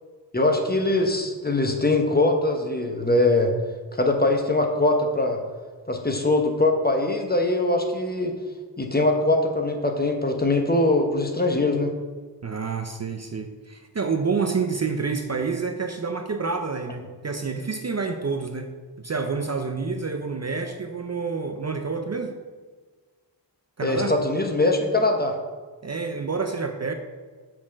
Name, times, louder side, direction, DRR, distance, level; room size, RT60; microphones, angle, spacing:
voice 1, 0.3-3.5 4.0-5.4 5.9-8.3 8.8-11.9 23.8-25.3, left 2 dB, 20° left, 3 dB, 0.8 m, -22 dB
voice 2, 12.4-18.7 19.0-22.4 23.8-24.1 25.8-26.9, right 4 dB, 35° right, 5 dB, 0.5 m, -28 dB
6.1 x 4.2 x 6.3 m, 1.4 s
wide cardioid pair, 80°, 44 cm